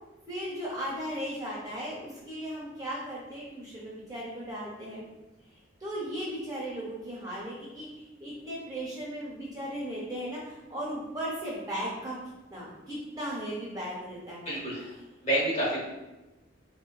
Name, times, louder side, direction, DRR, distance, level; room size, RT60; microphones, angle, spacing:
voice 1, 0.3-5.0 5.8-12.2 12.5-14.6, equal, 20° right, -7 dB, 0.9 m, -36 dB
voice 2, 14.4-14.9 15.2-15.8, right 1 dB, 35° left, -5 dB, 0.9 m, -28 dB
3.5 x 2.2 x 2.2 m, 1.1 s
head